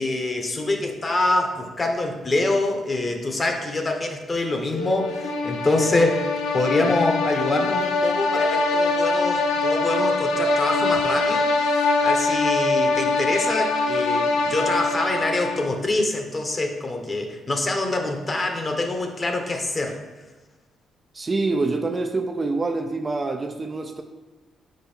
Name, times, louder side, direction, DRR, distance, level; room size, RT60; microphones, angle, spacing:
voice 1, 0.0-6.2 6.5-11.5 12.0-20.0, left 2 dB, 30° left, 4 dB, 1.0 m, -25 dB
Plucked string instrument, 4.7-6.7 7.3-10.1 10.4-10.5 10.9-11.0, equal, 70° left, 1.1 m, -35 dB
sound 1, 4.9-15.8, left 3 dB, 90° left, 0.5 m, -23 dB
voice 2, 21.1-24.0, right 3 dB, 30° right, 5 dB, 0.5 m, -26 dB
5.3 x 4.5 x 4.4 m, 1.3 s
cardioid pair, 90°, 0 cm